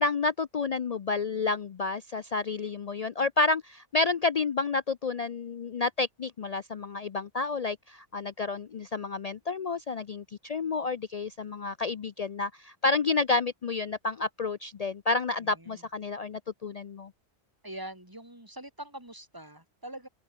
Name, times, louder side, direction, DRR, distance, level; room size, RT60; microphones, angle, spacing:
voice 1, 0.0-17.1, left 3 dB, 50° left, 0.4 m, -30 dB
voice 2, 15.4-15.8 17.6-20.1, right 1 dB, 15° right, 4.2 m, -43 dB
omnidirectional pair, 1.2 m